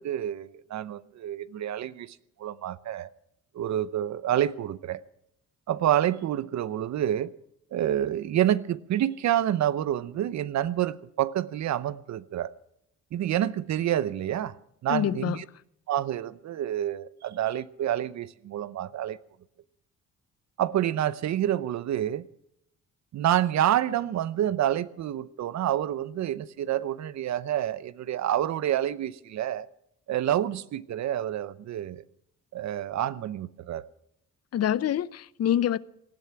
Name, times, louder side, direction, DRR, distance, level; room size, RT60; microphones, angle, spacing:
voice 1, 0.0-3.1 3.5-5.0 5.7-7.3 7.7-12.5 13.1-14.5 14.8-15.4 15.9-19.2 20.6-22.3 23.1-29.7 30.1-32.0 32.5-33.9, right 11 dB, 65° right, 0.8 m, -28 dB
voice 2, 14.9-15.4 34.5-35.8, left 11 dB, 55° left, 0.6 m, -26 dB
18.5 x 12.5 x 5.8 m
cardioid pair, 90°, 30 cm